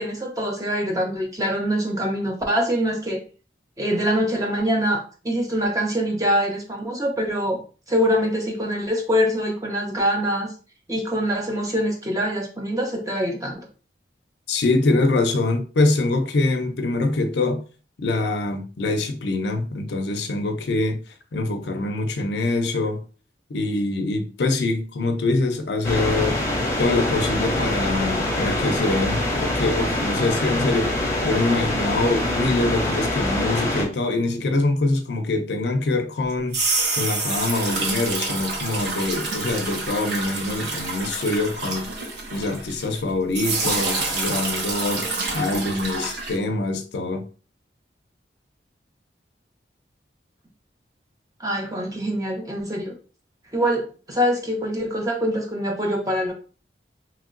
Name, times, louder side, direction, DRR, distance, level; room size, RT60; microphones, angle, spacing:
voice 1, 0.0-3.2 3.8-7.6 7.9-10.5 10.9-13.6 51.4-52.9 53.5-56.3, equal, 20° right, 0.6 m, -24 dB
voice 2, 14.5-17.6 18.0-21.0 21.3-23.0 23.5-26.4 26.8-36.6 37.0-41.9 42.3-45.0 45.3-47.2, left 2 dB, 75° left, 0.5 m, -24 dB
sound 1, 25.8-33.8, left 1 dB, 15° left, 0.8 m, -24 dB
sound 2, 36.3-43.0 43.3-46.4, right 3 dB, 70° right, 0.8 m, -27 dB
3.1 x 2.8 x 2.5 m
head